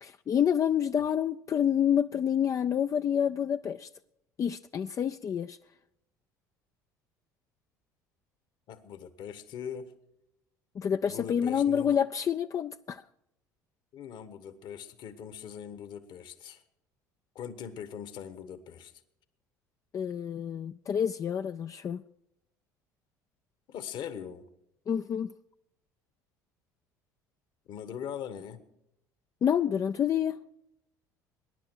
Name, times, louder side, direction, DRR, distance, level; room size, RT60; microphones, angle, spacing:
voice 1, 0.0-3.9 4.4-5.6 10.8-13.0 19.9-22.0 24.9-25.3 29.4-30.4, left 8 dB, 35° left, 0.4 m, -28 dB
voice 2, 8.7-9.9 11.1-12.0 13.9-16.6 17.3-18.9 23.7-24.5 27.7-28.6, left 8 dB, 55° left, 1.4 m, -41 dB
22.0 x 10.5 x 4.6 m
hypercardioid pair, 65°, 9 cm